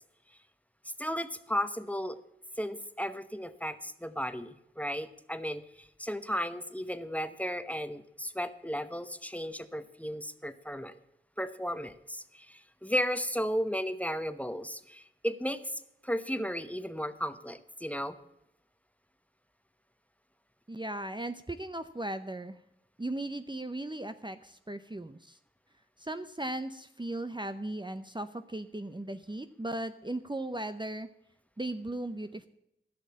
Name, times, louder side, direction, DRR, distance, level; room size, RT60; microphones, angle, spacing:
voice 1, 1.0-2.2 2.6-10.9 11.4-18.2, equal, 5° left, 11 dB, 0.9 m, -34 dB
voice 2, 20.7-22.6 23.0-25.4 26.0-31.1 31.6-32.5, right 1 dB, 25° right, 9 dB, 0.7 m, -37 dB
15.0 x 6.5 x 8.4 m, 0.82 s
wide cardioid pair, 45°, 20 cm